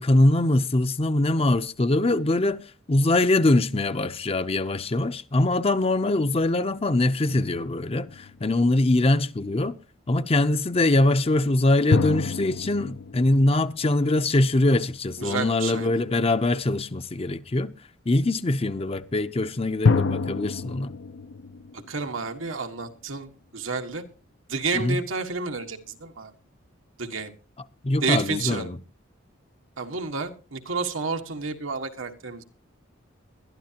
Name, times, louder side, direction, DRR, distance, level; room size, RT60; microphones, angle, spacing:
voice 1, 0.0-2.6 2.9-9.7 10.1-17.7 18.1-20.9 24.7-25.0 27.8-28.8, left 2 dB, 30° left, 0.6 m, -23 dB
sound 1, 7.3-8.9 11.9-14.6 19.8-22.8, left 4 dB, 70° left, 0.6 m, -28 dB
voice 2, 15.2-16.0 21.7-24.0 24.5-26.3 27.0-27.3 28.0-28.7 29.8-32.4, right 4 dB, 90° right, 1.6 m, -30 dB
21.5 x 12.5 x 2.9 m
head